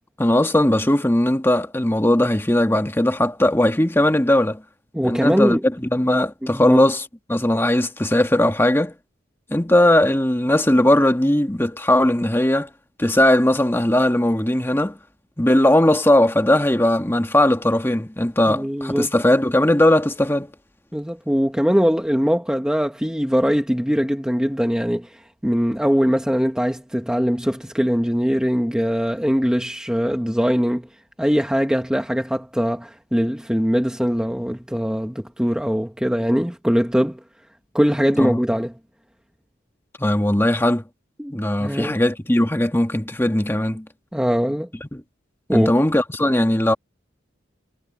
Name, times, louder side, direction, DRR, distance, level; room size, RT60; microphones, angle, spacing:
voice 1, 0.2-4.6 5.0-8.9 9.5-12.7 13.0-15.0 15.4-20.5 38.2-38.4 40.0-40.8 41.3-43.9 44.8-45.0 45.5-46.7, left 1 dB, 10° left, 1.5 m, -18 dB
voice 2, 4.9-5.6 6.4-6.8 18.5-19.1 20.9-30.9 31.2-37.2 37.7-38.7 41.2-41.3 41.6-42.0 44.1-44.7 45.5-45.7, equal, 5° right, 1.0 m, -21 dB
head